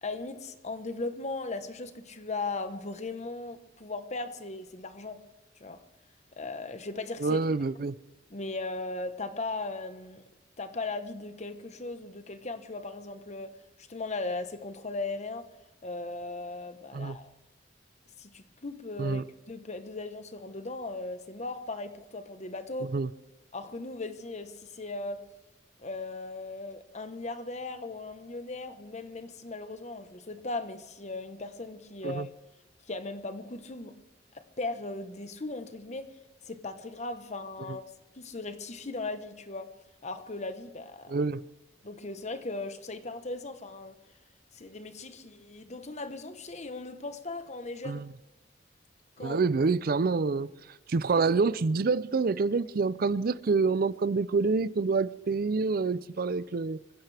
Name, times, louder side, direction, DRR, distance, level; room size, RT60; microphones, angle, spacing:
voice 1, 0.0-5.2 5.6-5.8 6.3-7.4 8.3-10.3 10.6-15.5 15.8-17.3 18.2-19.2 19.5-22.9 23.5-25.2 25.8-32.3 32.9-34.0 34.3-36.1 36.4-39.7 40.0-41.2 41.8-44.0 44.5-48.0 49.2-49.4, left 3 dB, 40° left, 1.1 m, -38 dB
voice 2, 7.2-8.0 16.9-17.2 19.0-19.2 22.8-23.1 32.0-32.3 37.7-37.8 41.1-41.4 47.8-48.1 49.2-56.8, right 4 dB, 55° right, 0.5 m, -27 dB
25.0 x 16.0 x 3.4 m
head